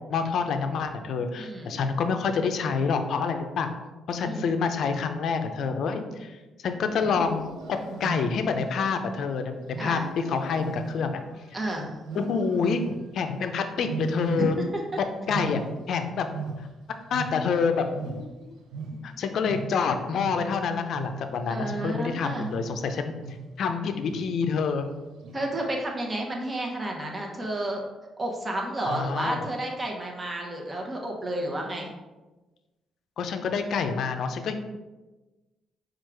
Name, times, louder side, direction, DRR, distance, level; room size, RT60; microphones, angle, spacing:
voice 1, 0.1-3.7 4.1-11.2 12.1-12.8 13.1-14.6 15.0-15.6 15.9-16.3 16.6-16.7 17.1-18.5 19.0-23.1 23.6-24.9 28.8-29.4 33.2-34.5, left 5 dB, 65° left, 7 dB, 0.5 m, -27 dB
voice 2, 1.4-1.8 4.2-4.5 9.8-10.1 11.5-11.9 14.4-14.8 21.5-22.5 25.3-27.8 28.2-31.9, right 1 dB, 25° right, -1 dB, 1.0 m, -31 dB
Wild animals, 6.9-8.6 9.7-11.6 12.0-13.2 13.8-14.9 15.1-17.7 17.9-22.8 23.2-23.6 24.1-24.5 25.2-25.7, right 3 dB, 80° right, 0.5 m, -37 dB
4.6 x 2.5 x 4.5 m, 1.1 s
cardioid pair, 90°, 0 cm